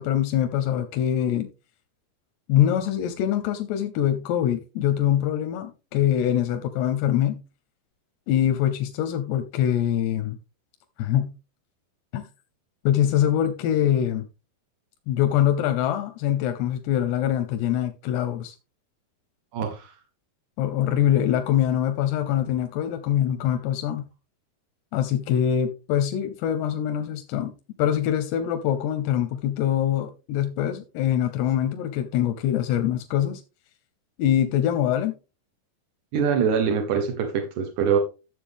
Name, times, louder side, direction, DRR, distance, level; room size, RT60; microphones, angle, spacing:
voice 1, 0.0-1.5 2.5-7.4 8.3-10.4 11.0-11.3 12.1-12.2 12.8-14.3 15.1-18.6 20.6-24.0 24.9-27.5 27.8-33.4 34.2-35.2, left 10 dB, 90° left, 2.9 m, -24 dB
voice 2, 19.5-19.9 36.1-38.0, right 7 dB, 60° right, 2.2 m, -24 dB
12.5 x 7.4 x 3.5 m
omnidirectional pair, 4.7 m